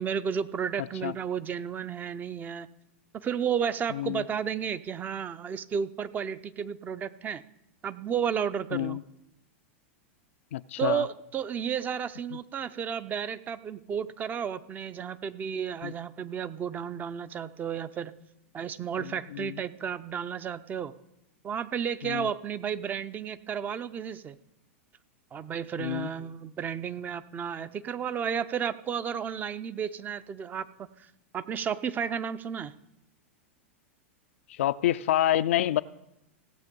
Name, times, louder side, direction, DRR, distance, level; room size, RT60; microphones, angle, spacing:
voice 1, 0.0-2.7 3.1-7.4 7.8-9.0 10.8-18.1 18.5-20.9 21.4-24.4 25.3-30.7 31.3-32.7, right 7 dB, 25° right, 0.6 m, -32 dB
voice 2, 10.5-11.0 15.8-15.9 19.4-19.5 22.1-22.3 25.8-26.1 34.6-35.8, left 13 dB, 75° left, 0.4 m, -27 dB
16.5 x 7.6 x 5.3 m
hypercardioid pair, 115°, 7 cm